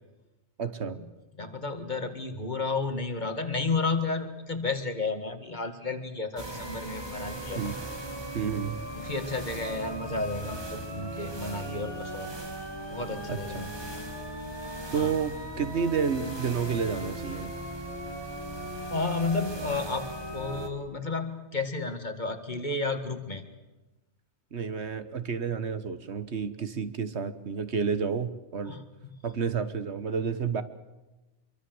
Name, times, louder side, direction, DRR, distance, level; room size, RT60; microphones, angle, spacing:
voice 1, 0.6-1.0 7.6-7.8 8.3-8.8 13.3-13.7 14.9-17.5 24.5-28.8 29.2-30.6, right 6 dB, 70° right, 12 dB, 1.6 m, -30 dB
voice 2, 1.4-7.7 8.9-12.4 12.9-13.7 14.9-15.1 18.9-23.4 28.7-29.2, left 3 dB, 40° left, 7 dB, 2.1 m, -32 dB
sound 1, 6.4-20.7, right 1 dB, 20° right, 2.5 m, -38 dB
25.5 x 23.5 x 7.9 m, 1.1 s
omnidirectional pair, 1.2 m